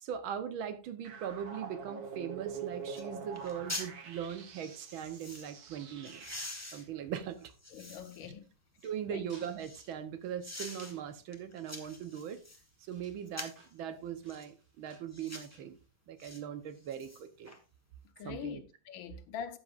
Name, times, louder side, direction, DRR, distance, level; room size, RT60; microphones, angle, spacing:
voice 1, 0.0-6.4 6.7-7.5 8.8-12.4 12.9-15.8 16.1-17.5 18.2-18.6, right 9 dB, 85° right, 1.8 m, -40 dB
sound 1, 1.0-6.7, right 6 dB, 55° right, 1.5 m, -45 dB
sound 2, 2.4-2.5 2.9-3.1 3.3-3.9 4.7-5.5 6.0-8.3 8.8-9.9 10.4-10.9 11.3-12.6 13.3-13.7 14.3-14.5 15.1-15.5 16.2-16.4 16.8-17.6 17.9-18.0, left 1 dB, 10° left, 0.9 m, -45 dB
voice 2, 7.7-8.5 9.1-9.2 18.2-19.6, left 8 dB, 75° left, 1.7 m, -43 dB
sound 3, 8.2-16.4, right 1 dB, 25° right, 6.8 m, -63 dB
12.5 x 8.3 x 2.5 m
omnidirectional pair, 2.2 m